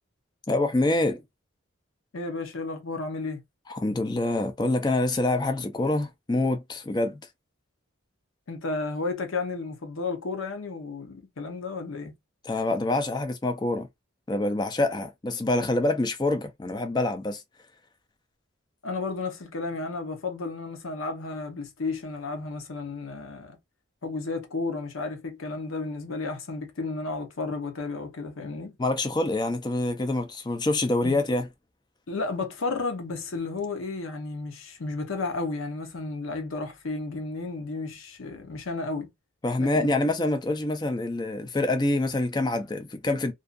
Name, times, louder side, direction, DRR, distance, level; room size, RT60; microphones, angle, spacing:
voice 1, 0.5-1.2 3.7-7.2 12.4-13.9 14.3-17.4 28.8-31.5 39.4-43.3, left 2 dB, 20° left, 0.4 m, -26 dB
voice 2, 2.1-3.4 8.5-12.1 18.8-23.6 24.0-28.7 31.0-31.2 32.1-39.1 39.6-40.1, left 3 dB, 70° left, 0.7 m, -33 dB
2.5 x 2.3 x 2.3 m
head